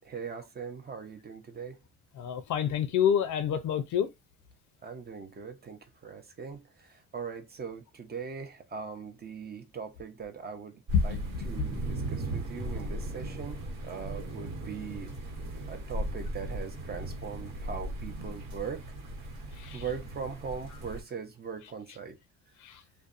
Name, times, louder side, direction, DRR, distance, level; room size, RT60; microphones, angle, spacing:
voice 1, 0.0-1.8 4.8-15.1 15.7-18.8 19.7-22.2, right 6 dB, 35° right, 0.6 m, -40 dB
voice 2, 2.2-4.1 10.9-11.2 19.6-19.8 22.6-22.8, left 8 dB, 75° left, 0.5 m, -27 dB
sound 1, 10.9-21.0, right 1 dB, 85° right, 1.2 m, -37 dB
2.5 x 2.2 x 2.4 m
cardioid pair, 90°, 30 cm